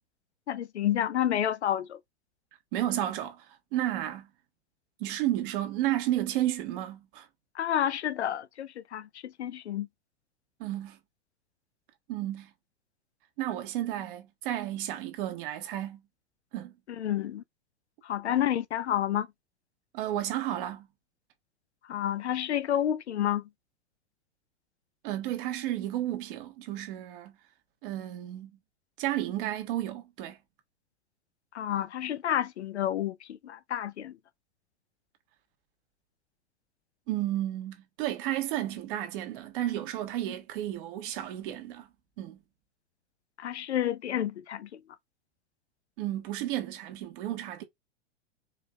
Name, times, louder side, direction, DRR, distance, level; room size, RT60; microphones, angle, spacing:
voice 1, 0.5-2.0 7.5-9.9 16.9-17.4 18.0-19.3 21.9-23.5 31.5-34.2 43.4-44.8, left 11 dB, 80° left, 0.6 m, -30 dB
voice 2, 2.7-4.3 5.0-7.3 10.6-11.0 12.1-12.5 13.4-16.0 16.5-16.7 19.9-20.9 25.0-27.3 27.8-28.5 29.0-30.4 37.1-41.9 42.2-42.4 46.0-47.6, right 13 dB, 50° right, 1.4 m, -32 dB
4.7 x 3.3 x 2.3 m
hypercardioid pair, 105°, 33 cm